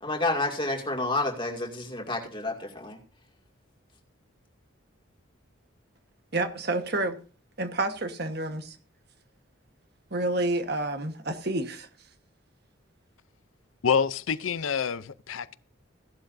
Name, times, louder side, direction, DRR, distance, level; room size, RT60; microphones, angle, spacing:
voice 1, 0.0-3.0, left 2 dB, 25° left, 2.3 m, -29 dB
voice 2, 6.3-7.2 7.6-8.8 10.1-11.9, right 2 dB, 55° right, 1.3 m, -29 dB
voice 3, 13.8-15.6, left 6 dB, 90° left, 0.6 m, -27 dB
16.0 x 11.5 x 2.7 m
head